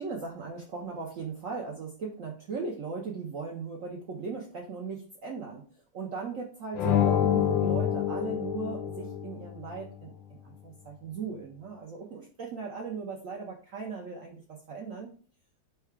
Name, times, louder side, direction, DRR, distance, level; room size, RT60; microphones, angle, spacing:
voice 1, 0.0-15.1, right 4 dB, 90° right, -1 dB, 0.7 m, -38 dB
sound 1, 6.8-9.5, left 10 dB, 75° left, 1.2 m, -27 dB
4.6 x 2.3 x 4.6 m, 0.41 s
omnidirectional pair, 2.3 m